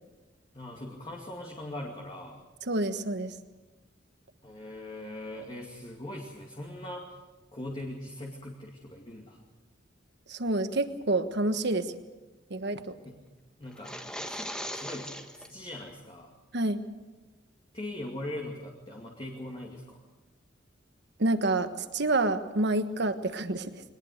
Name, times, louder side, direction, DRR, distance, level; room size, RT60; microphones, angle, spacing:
voice 1, 0.5-2.4 4.4-7.2 7.5-9.4 13.0-13.1 13.6-13.9 14.3-14.4 14.7-16.3 17.7-20.0, left 1 dB, 30° left, -1 dB, 2.3 m, -40 dB
voice 2, 2.7-3.3 10.3-11.9 12.5-12.9 16.5-16.8 21.2-23.8, right 2 dB, 65° right, 9 dB, 1.4 m, -28 dB
sound 1, 13.7-15.5, equal, 5° left, 1.5 m, -38 dB
22.0 x 19.5 x 6.6 m, 1.2 s
head